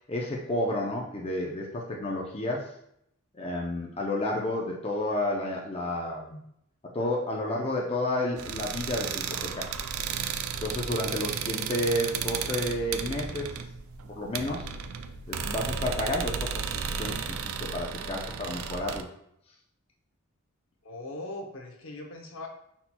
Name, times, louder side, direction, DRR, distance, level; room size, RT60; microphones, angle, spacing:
voice 1, 0.1-2.7 3.3-6.4 6.9-9.7 10.6-13.6 14.0-14.7 15.3-19.1, left 1 dB, 25° left, -2 dB, 0.5 m, -31 dB
sound 1, 8.4-19.0, right 7 dB, 70° right, 0.4 m, -34 dB
voice 2, 20.8-22.5, left 2 dB, 65° left, 2 dB, 0.8 m, -40 dB
5.6 x 4.3 x 2.2 m, 0.73 s
head